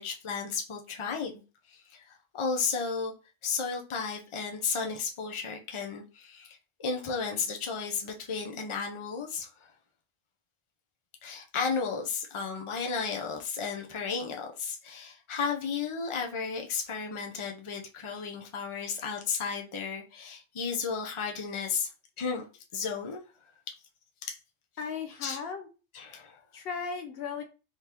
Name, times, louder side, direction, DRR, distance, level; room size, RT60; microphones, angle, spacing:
voice 1, 0.0-1.4 1.7-3.1 3.4-9.7 11.2-21.9 22.2-22.4 22.7-23.2 23.7-23.8 24.2-24.4 25.2-25.4 25.9-26.4, left 5 dB, 35° left, 0.6 m, -33 dB
voice 2, 24.8-25.7 26.5-27.4, left 6 dB, 65° left, 0.9 m, -36 dB
3.7 x 3.2 x 2.8 m
omnidirectional pair, 1.1 m